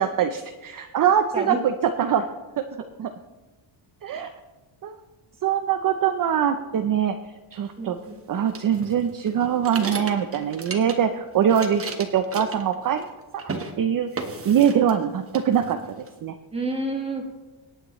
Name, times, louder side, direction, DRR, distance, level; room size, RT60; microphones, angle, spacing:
voice 1, 0.0-1.7 2.0-2.3 3.0-3.1 4.0-4.3 4.8-5.0 5.4-7.1 7.5-8.0 8.3-13.1 13.4-16.3, right 8 dB, 45° right, 7 dB, 0.6 m, -23 dB
voice 2, 7.8-8.1 16.5-17.3, right 2 dB, 10° right, 2 dB, 1.7 m, -29 dB
sound 1, 8.5-11.2 11.4-13.1 13.4-13.7 14.2-15.0 15.3-16.1, right 4 dB, 25° right, 1.1 m, -35 dB
25.5 x 9.0 x 3.1 m, 1.2 s
cardioid pair, 155°, 49 cm